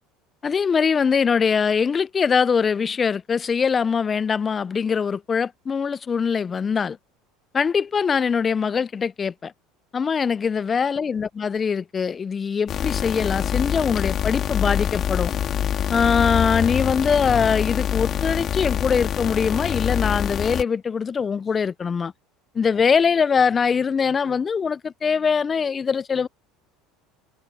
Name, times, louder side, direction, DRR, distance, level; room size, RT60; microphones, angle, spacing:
voice 1, 0.4-7.0 7.5-9.5 9.9-15.3 15.9-22.1 22.5-26.3, left 6 dB, 30° left, 0.5 m, -22 dB
sound 1, 12.7-20.6, left 9 dB, 45° left, 2.1 m, -25 dB
supercardioid pair, 95°, 0 cm